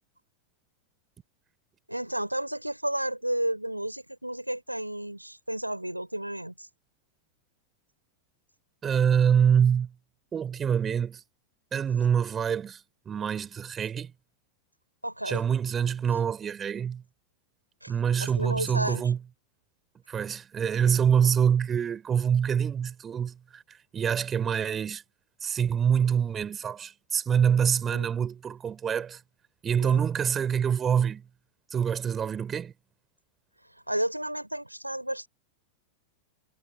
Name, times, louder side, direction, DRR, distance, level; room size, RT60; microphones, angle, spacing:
voice 1, 1.9-6.7 15.0-15.4 17.8-17.9 18.2-19.0 27.9-28.1 29.8-30.0 33.9-35.3, right 1 dB, 90° right, 3.7 m, -32 dB
voice 2, 8.8-9.9 10.3-11.2 11.7-14.1 15.3-17.0 17.9-19.2 20.1-25.0 25.4-29.2 29.6-31.2 31.7-32.7, right 8 dB, 20° right, 5.5 m, -25 dB
figure-of-eight pair, 90°, 0 cm